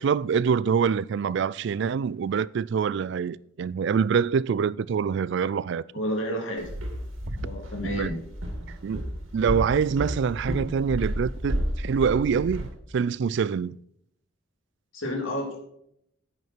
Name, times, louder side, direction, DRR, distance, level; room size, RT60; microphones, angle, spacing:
voice 1, 0.0-5.8 7.8-8.1 8.8-9.0 9.3-13.8, right 6 dB, 60° right, 0.3 m, -25 dB
voice 2, 5.9-6.6 7.3-8.2 14.9-15.6, equal, 85° left, 3.2 m, -30 dB
Walk footsteps, 6.6-12.7, equal, 80° right, 2.8 m, -32 dB
10.5 x 9.4 x 4.5 m
head